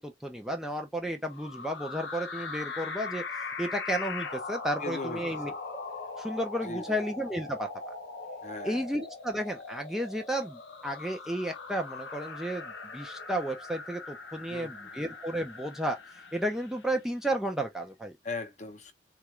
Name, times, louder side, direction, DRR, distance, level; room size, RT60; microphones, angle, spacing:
voice 1, 0.0-5.8 6.2-7.9 8.6-18.2, right 1 dB, ahead, 0.5 m, -33 dB
sound 1, 1.3-17.0, left 4 dB, 85° left, 0.7 m, -40 dB
voice 2, 4.8-5.6 6.6-7.0 8.4-8.8 14.4-14.9 18.2-18.9, left 3 dB, 40° left, 0.7 m, -39 dB
3.9 x 2.4 x 3.1 m
head